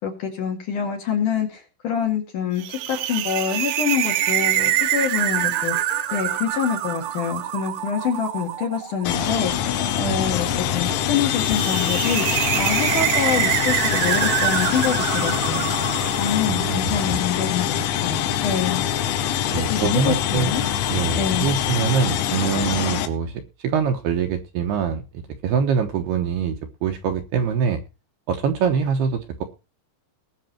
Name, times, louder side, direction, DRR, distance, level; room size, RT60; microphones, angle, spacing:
voice 1, 0.0-15.7 16.2-18.8 19.7-20.6 21.2-21.5, left 7 dB, 50° left, 2 dB, 3.0 m, -26 dB
sound 1, 2.6-16.9, right 12 dB, 90° right, 3.6 m, -25 dB
sound 2, 9.0-23.1, left 10 dB, 85° left, 3.7 m, -24 dB
voice 2, 16.4-17.2 19.5-20.5 20.9-25.0 25.4-26.5 26.8-27.8 28.3-29.4, right 6 dB, 70° right, 5 dB, 2.6 m, -24 dB
20.0 x 6.7 x 4.4 m, 0.30 s
omnidirectional pair, 5.6 m